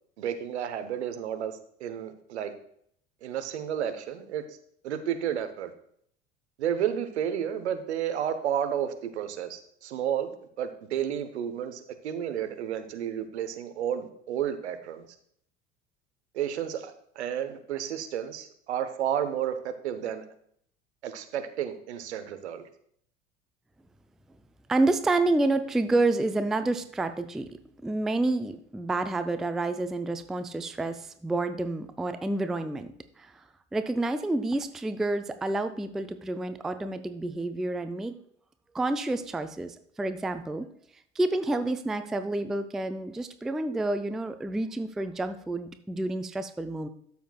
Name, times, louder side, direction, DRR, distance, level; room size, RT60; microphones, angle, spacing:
voice 1, 0.2-2.5 3.2-4.4 4.8-5.7 6.6-15.1 16.3-20.2 21.0-22.7, right 9 dB, 70° right, 8 dB, 1.0 m, -32 dB
voice 2, 24.7-27.5 27.8-33.4 33.7-38.2 38.7-40.7 41.2-46.9, right 2 dB, ahead, 10 dB, 0.4 m, -29 dB
13.0 x 7.1 x 2.3 m, 0.66 s
figure-of-eight pair, 70°, 34 cm